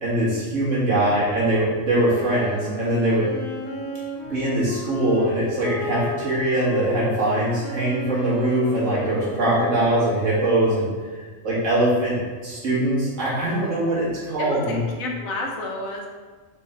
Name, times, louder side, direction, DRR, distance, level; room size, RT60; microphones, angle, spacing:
voice 1, 0.0-3.3 4.3-10.9 11.2-14.8, right 1 dB, 65° right, -8 dB, 1.8 m, -22 dB
Wind instrument woodwind instrument, 2.0-10.3, left 1 dB, 50° left, 0.7 m, -33 dB
voice 2, 14.4-16.1, left 2 dB, 80° left, 0 dB, 1.1 m, -30 dB
4.2 x 3.6 x 3.2 m, 1.4 s
omnidirectional pair, 1.4 m